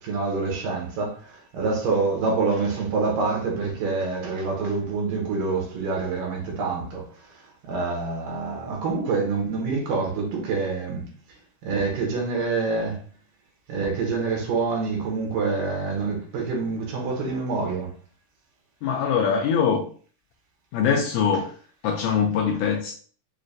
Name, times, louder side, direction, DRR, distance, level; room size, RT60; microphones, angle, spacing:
voice 1, 0.0-11.1 11.6-13.0 13.7-17.9, right 4 dB, 85° right, 2.8 m, -26 dB
voice 2, 18.8-19.9 20.7-21.5 21.8-22.9, left 6 dB, 80° left, 1.7 m, -22 dB
6.4 x 2.1 x 2.6 m
omnidirectional pair, 3.7 m